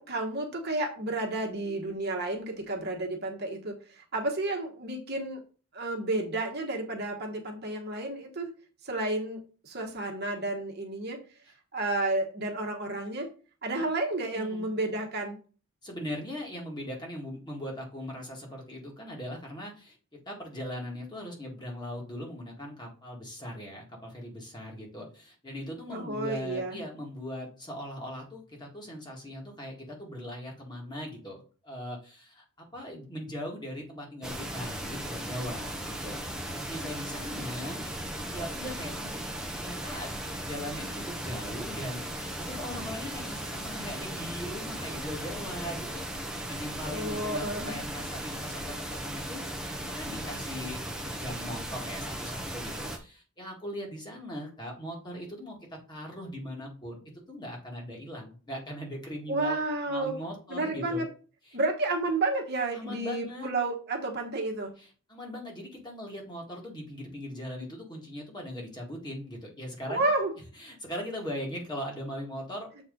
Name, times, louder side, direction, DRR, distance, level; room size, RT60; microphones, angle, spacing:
voice 1, 0.0-5.4 5.7-8.5 8.8-11.2 11.7-13.3 13.6-15.4 25.9-26.8 46.9-47.8 59.3-60.1 60.5-61.1 61.5-64.7 69.9-70.3, right 2 dB, 50° right, 1 dB, 1.3 m, -31 dB
voice 2, 14.3-14.7 15.8-20.0 20.3-37.9 38.3-39.2 39.5-49.4 49.9-57.0 57.3-59.6 59.9-61.0 61.5-61.6 62.7-63.5 64.8-70.1 70.6-72.7, equal, 20° left, -1 dB, 1.9 m, -40 dB
sound 1, 34.2-53.0, right 1 dB, 5° right, 0.8 m, -37 dB
7.3 x 4.3 x 3.8 m, 0.38 s
head